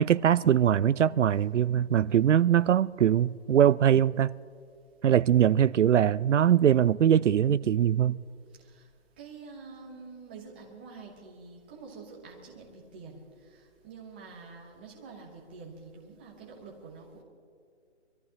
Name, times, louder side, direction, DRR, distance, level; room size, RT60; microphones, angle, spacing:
voice 1, 0.0-4.3 5.0-8.2, right 9 dB, 80° right, 0.5 m, -22 dB
voice 2, 9.2-13.2 13.5-17.2, right 4 dB, 10° right, 1.0 m, -47 dB
25.5 x 14.0 x 2.9 m
hypercardioid pair, 170°, 36 cm